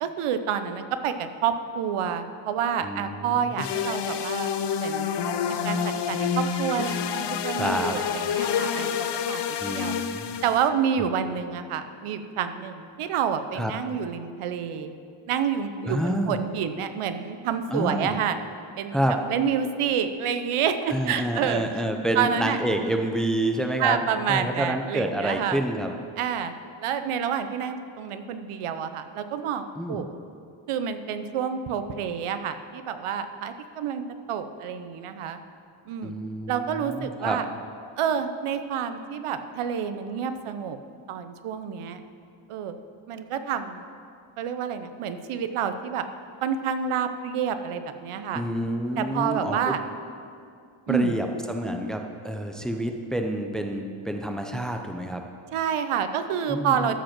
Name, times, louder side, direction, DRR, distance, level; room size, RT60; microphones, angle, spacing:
voice 1, 0.0-4.5 4.8-5.1 5.5-8.9 9.3-9.4 9.7-9.9 10.4-15.0 15.3-18.4 18.8-19.0 19.3-21.6 22.2-22.6 23.8-25.6 26.2-26.5 26.8-30.1 30.7-34.0 34.3-35.4 35.9-36.1 36.5-37.4 38.0-40.8 41.1-42.0 42.5-42.7 43.1-43.8 44.4-46.1 46.4-48.4 49.0-49.8 50.9-51.1 55.5-57.0, right 8 dB, 90° right, 10 dB, 0.7 m, -28 dB
voice 2, 2.8-3.7 7.6-7.9 9.6-10.4 11.0-11.1 13.5-13.7 15.8-16.4 17.7-18.2 18.9-19.2 20.9-24.0 24.3-25.9 29.8-30.0 36.0-37.4 48.3-49.8 50.9-55.2 56.5-57.0, right 1 dB, ahead, 4 dB, 0.5 m, -28 dB
sound 1, 3.6-10.7, left 7 dB, 55° left, 0.6 m, -28 dB
13.0 x 5.2 x 5.9 m, 2.4 s
wide cardioid pair, 140°, 49 cm